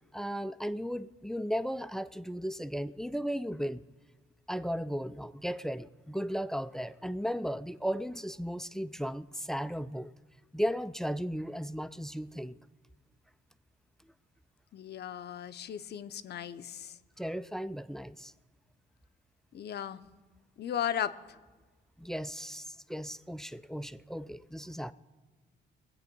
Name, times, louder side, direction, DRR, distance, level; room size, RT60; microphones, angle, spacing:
voice 1, 0.1-3.8 4.5-10.1 10.5-12.6 17.2-18.3 22.0-24.9, equal, ahead, 15 dB, 0.3 m, -35 dB
voice 2, 14.7-17.0 19.5-20.0 20.6-21.1, left 9 dB, 55° left, 13 dB, 0.6 m, -36 dB
20.0 x 8.1 x 5.2 m, 1.3 s
cardioid pair, 90°, 20 cm